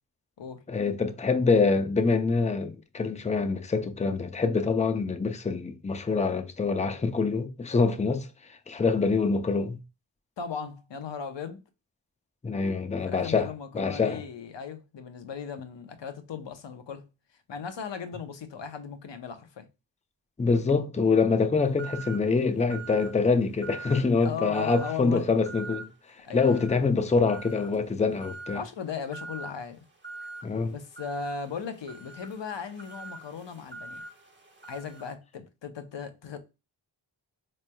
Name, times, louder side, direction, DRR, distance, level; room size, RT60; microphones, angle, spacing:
voice 1, 0.7-8.3 8.7-9.8 12.4-14.2 20.4-25.9 26.3-28.6 30.4-30.8, left 4 dB, 15° left, 0.5 m, -25 dB
voice 2, 10.4-11.6 13.0-17.1 17.5-19.7 24.2-25.2 26.2-26.6 28.5-29.8 30.7-34.0 34.7-36.4, left 6 dB, 70° left, 0.8 m, -37 dB
sound 1, 21.8-22.3 22.7-23.2 23.6-24.1 24.5-25.0 25.4-25.9 26.4-26.8 27.3-27.8 28.2-28.7 29.1-29.5 30.0-30.4 31.0-35.1, right 4 dB, 25° right, 0.9 m, -43 dB
4.2 x 3.2 x 2.2 m
cardioid pair, 60°, 45 cm